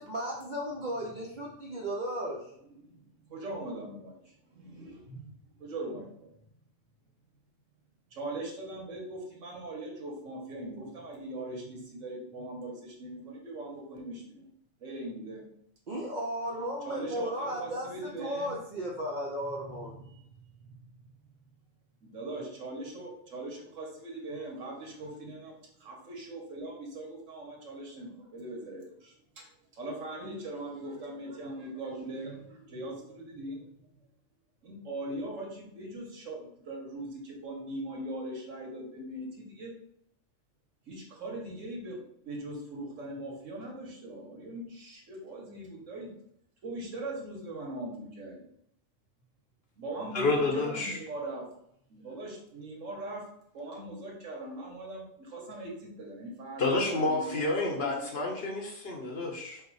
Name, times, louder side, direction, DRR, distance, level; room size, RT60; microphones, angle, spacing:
voice 1, 0.0-2.4 15.9-19.9, equal, 50° right, -2 dB, 0.6 m, -35 dB
voice 2, 2.6-5.3 5.6-6.3 8.1-14.5 14.8-15.5 16.8-18.6 19.6-20.2 20.7-20.8 22.0-33.9 34.6-39.7 40.9-46.1 46.6-48.5 49.8-51.5 51.9-53.2 53.5-58.3, right 1 dB, 75° right, -1 dB, 1.5 m, -41 dB
voice 3, 50.1-51.0 56.6-59.6, left 2 dB, 55° left, 0 dB, 1.0 m, -29 dB
4.7 x 2.0 x 4.7 m, 0.72 s
omnidirectional pair, 1.3 m